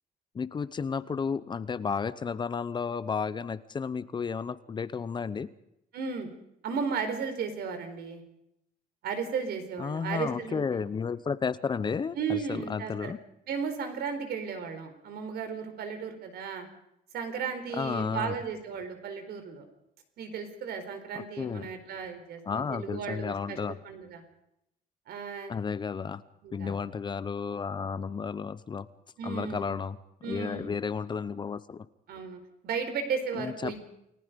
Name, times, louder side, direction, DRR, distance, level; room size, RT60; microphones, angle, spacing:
voice 1, 0.3-5.5 9.8-13.2 17.7-18.4 21.1-21.7 22.4-23.8 25.5-26.2 26.5-28.9 29.2-30.0 30.3-31.9 33.3-33.8, left 5 dB, 30° left, 15 dB, 0.8 m, -32 dB
voice 2, 5.9-6.3 6.6-8.2 9.0-10.6 12.1-13.1 13.5-16.7 17.1-19.6 20.2-23.6 23.8-24.2 25.1-25.5 26.4-26.7 29.2-29.8 30.2-30.7 32.1-33.8, right 6 dB, 80° right, 8 dB, 4.5 m, -35 dB
29.0 x 19.0 x 5.3 m, 0.79 s
cardioid pair, 160°, 16 cm